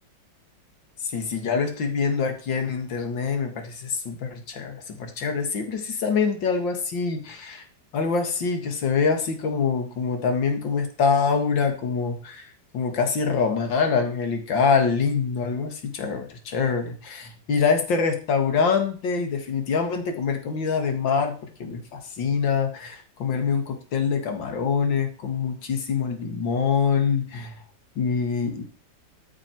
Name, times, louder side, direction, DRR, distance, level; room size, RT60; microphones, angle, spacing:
voice 1, 1.0-7.6 7.9-27.6 28.0-28.6, left 5 dB, 80° left, 6 dB, 2.4 m, -25 dB
14.0 x 6.1 x 4.6 m, 0.38 s
omnidirectional pair, 2.0 m